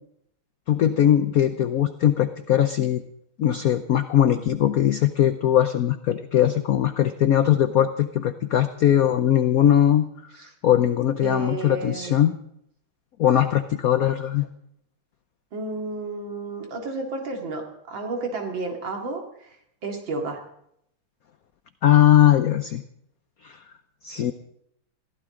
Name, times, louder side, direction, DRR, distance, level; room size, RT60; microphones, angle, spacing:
voice 1, 0.7-3.0 3.4-10.1 10.6-12.4 13.2-14.5 21.8-22.8 23.4-23.6 24.0-24.3, left 11 dB, 85° left, 10 dB, 0.7 m, -20 dB
voice 2, 11.2-12.2 15.5-19.6 19.8-20.4, right 3 dB, 60° right, 2 dB, 3.0 m, -32 dB
21.5 x 15.0 x 3.8 m, 0.75 s
omnidirectional pair, 2.4 m